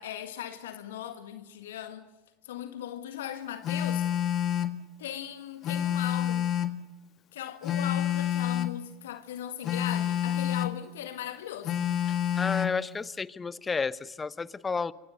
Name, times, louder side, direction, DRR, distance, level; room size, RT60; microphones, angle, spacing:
voice 1, 0.0-2.1 2.4-4.1 5.0-6.5 7.3-11.8, left 11 dB, 70° left, 1.8 m, -38 dB
Telephone, 3.6-4.8 5.6-6.8 7.6-8.8 9.6-10.8 11.6-12.8, left 10 dB, 40° left, 1.9 m, -28 dB
voice 2, 12.4-14.9, left 4 dB, 20° left, 1.1 m, -31 dB
27.5 x 25.0 x 6.5 m
hypercardioid pair, 85°, 0 cm